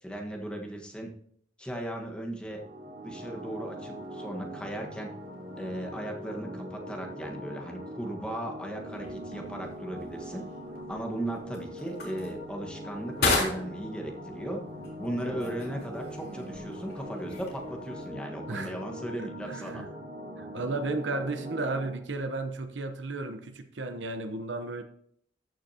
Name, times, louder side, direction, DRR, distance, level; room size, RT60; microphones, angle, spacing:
voice 1, 0.0-1.1 1.6-2.6 3.0-5.1 5.6-10.4 10.9-14.6 15.0-19.8, right 1 dB, 5° left, 1.4 m, -37 dB
sound 1, 2.5-21.9, equal, 50° right, 2.7 m, -41 dB
sound 2, 8.9-18.1, left 3 dB, 60° left, 3.4 m, -36 dB
voice 2, 19.2-19.9 20.4-24.8, right 2 dB, 75° right, 0.9 m, -34 dB
14.0 x 6.3 x 2.8 m
head